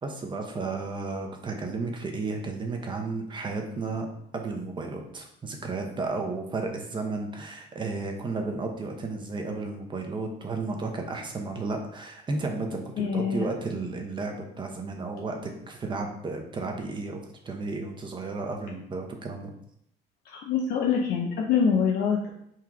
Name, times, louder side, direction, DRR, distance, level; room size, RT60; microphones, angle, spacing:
voice 1, 0.0-4.1 4.3-17.2 17.4-19.5, right 3 dB, 30° right, 3 dB, 0.8 m, -33 dB
voice 2, 13.0-13.4 20.3-22.3, left 6 dB, 65° left, -1 dB, 0.6 m, -25 dB
3.7 x 2.8 x 4.6 m, 0.73 s
cardioid pair, 110°, 17 cm